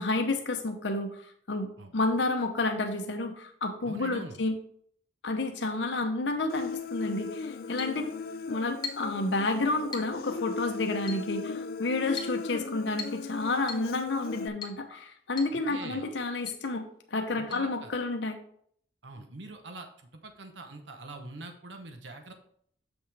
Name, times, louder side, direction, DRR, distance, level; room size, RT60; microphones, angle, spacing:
voice 1, 0.0-4.5 5.2-8.1 8.5-16.8 17.1-18.4, left 2 dB, 75° left, 4 dB, 0.8 m, -30 dB
voice 2, 3.8-4.4 15.5-16.0 17.4-17.9 19.0-22.3, right 2 dB, 75° right, 5 dB, 0.9 m, -44 dB
Human voice, 6.5-14.5, left 4 dB, 50° left, 0.3 m, -37 dB
Chink clink, 7.8-8.0 8.8-9.2 9.9-10.2 11.1-11.3 12.2-12.4 13.0-13.3 13.7-13.9 14.6-14.8 15.4-15.6 15.8-15.9 16.5-16.6 17.5-17.6, left 5 dB, 25° left, 1.2 m, -39 dB
7.9 x 6.1 x 3.4 m, 0.63 s
head